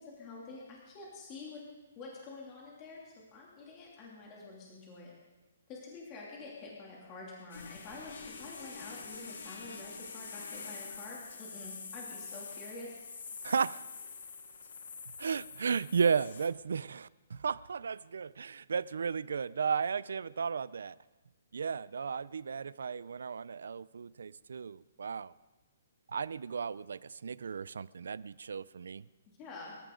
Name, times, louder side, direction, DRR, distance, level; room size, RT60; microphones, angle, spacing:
voice 1, 0.0-1.6 2.0-5.1 5.7-13.0 29.3-29.8, left 3 dB, 20° left, -4 dB, 2.8 m, -47 dB
sound 1, 7.5-16.5, left 5 dB, 80° left, 2.2 m, -46 dB
voice 2, 13.4-13.8 15.1-21.0 21.5-25.3 26.1-29.1, right 6 dB, 80° right, 20 dB, 0.5 m, -34 dB
25.5 x 14.0 x 3.9 m, 1.2 s
hypercardioid pair, 175°, 0 cm